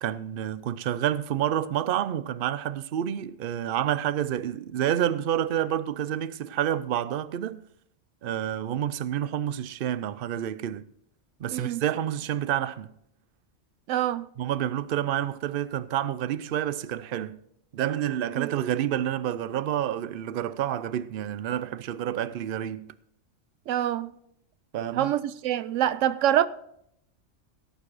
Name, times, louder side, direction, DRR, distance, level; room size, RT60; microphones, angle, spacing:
voice 1, 0.0-7.6 8.2-10.8 11.4-12.9 14.4-17.4 17.7-22.9 24.7-25.1, right 11 dB, 55° right, 0.7 m, -29 dB
voice 2, 13.9-14.3 18.4-18.5 23.7-24.1 24.9-26.5, right 11 dB, 85° right, 0.9 m, -25 dB
17.0 x 6.7 x 4.8 m
omnidirectional pair, 1.3 m